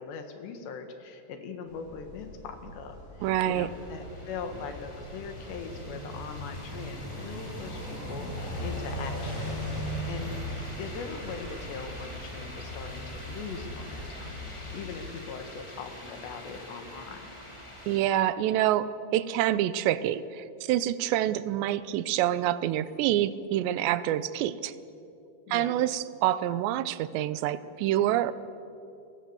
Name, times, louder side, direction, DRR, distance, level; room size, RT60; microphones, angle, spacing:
voice 1, 0.0-10.4 10.8-17.3 25.5-25.7, left 5 dB, 80° left, 6 dB, 3.9 m, -41 dB
sound 1, 1.7-14.8, equal, 30° left, 7.4 m, -39 dB
sound 2, 3.2-18.0, left 1 dB, 10° left, 2.4 m, -45 dB
voice 2, 3.2-3.7 17.9-24.7 25.5-28.3, right 12 dB, 85° right, 15 dB, 3.0 m, -27 dB
29.5 x 23.0 x 7.1 m, 2.7 s
omnidirectional pair, 4.9 m